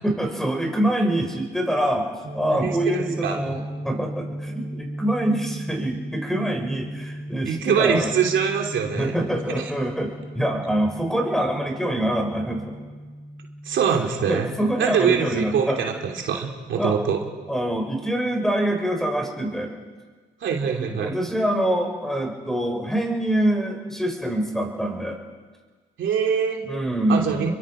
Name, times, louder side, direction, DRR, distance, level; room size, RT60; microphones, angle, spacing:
voice 1, 0.0-8.1 8.9-12.8 13.9-15.8 16.8-17.0 17.5-19.7 20.6-25.2 26.6-27.5, right 1 dB, ahead, 2 dB, 5.3 m, -25 dB
sound 1, 2.2-17.9, equal, 50° right, 3.6 m, -37 dB
voice 2, 2.5-3.4 7.5-9.1 13.6-14.5 14.8-17.2 20.4-21.1 26.0-26.6 27.1-27.5, right 7 dB, 70° right, 1 dB, 2.9 m, -23 dB
29.0 x 23.0 x 5.0 m, 1.4 s
cardioid pair, 90°, 20 cm